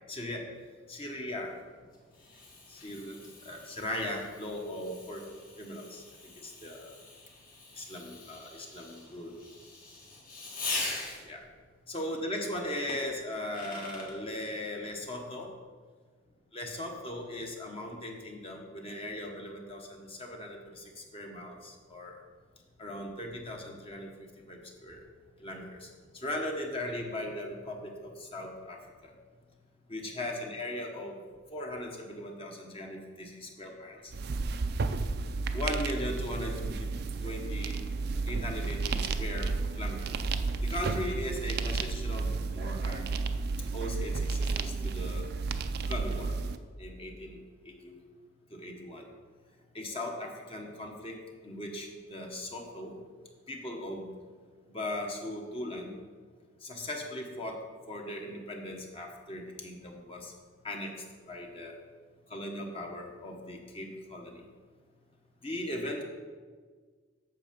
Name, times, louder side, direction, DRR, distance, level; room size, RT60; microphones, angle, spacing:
voice 1, 0.1-0.4 0.9-1.5 2.7-5.2 5.6-6.0 6.4-6.9 7.8-9.3 10.9-11.4 11.9-15.5 16.5-22.2 22.8-24.1 24.5-25.0 25.4-28.8 29.0-29.1 29.9-31.2 31.5-34.1 35.5-36.8 37.2-37.8 38.3-40.1 40.6-43.0 43.7-45.3 45.8-46.3 46.8-47.4 47.6-48.0 48.5-49.1 49.7-51.2 51.4-52.9 53.5-54.1 54.7-55.9 56.6-57.6 57.9-60.3 60.6-60.9 61.3-61.8 62.3-64.4 65.4-66.0, left 1 dB, 30° left, 1 dB, 1.1 m, -38 dB
Fireworks, 1.5-11.5 12.9-14.2, left 3 dB, 50° left, 1.9 m, -42 dB
sound 1, 34.1-46.6, right 4 dB, 55° right, 0.4 m, -32 dB
8.3 x 6.7 x 5.2 m, 1.6 s
head